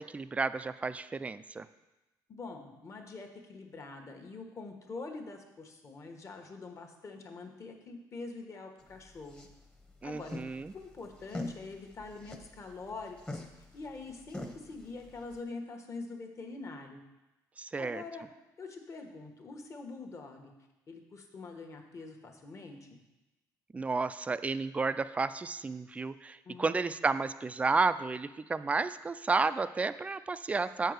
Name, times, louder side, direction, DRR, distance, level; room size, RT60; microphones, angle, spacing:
voice 1, 0.0-1.7 10.0-10.7 17.6-18.0 23.7-30.9, right 4 dB, 15° right, 13 dB, 0.3 m, -32 dB
voice 2, 2.3-9.4 10.0-10.4 10.7-13.4 13.7-17.0 17.8-18.2 18.6-20.5 20.9-23.0 26.4-27.1, left 3 dB, 40° left, 3 dB, 1.2 m, -44 dB
sound 1, 8.8-15.4, left 2 dB, 10° left, 0.9 m, -46 dB
8.0 x 4.6 x 6.5 m, 1.0 s
cardioid pair, 105°, 8 cm